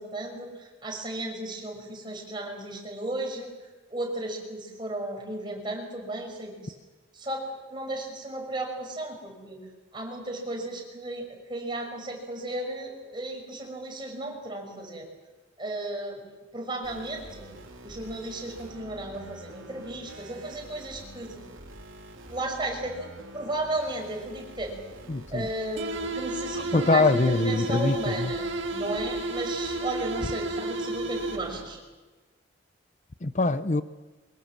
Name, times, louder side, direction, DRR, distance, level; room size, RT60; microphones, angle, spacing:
voice 1, 0.0-3.5 3.9-6.7 7.1-9.6 9.9-15.0 15.6-16.2 16.5-17.5 17.8-21.4 22.3-24.7 25.3-31.8, right 2 dB, 25° right, 1 dB, 6.1 m, -34 dB
sound 1, 16.8-31.7, right 1 dB, 85° right, 3.6 m, -46 dB
voice 2, 25.1-25.5 26.7-28.3 33.2-33.8, left 3 dB, 35° left, 13 dB, 0.6 m, -23 dB
sound 2, 25.8-31.7, right 2 dB, 65° right, 2.2 m, -32 dB
24.0 x 21.0 x 7.5 m, 1.3 s
head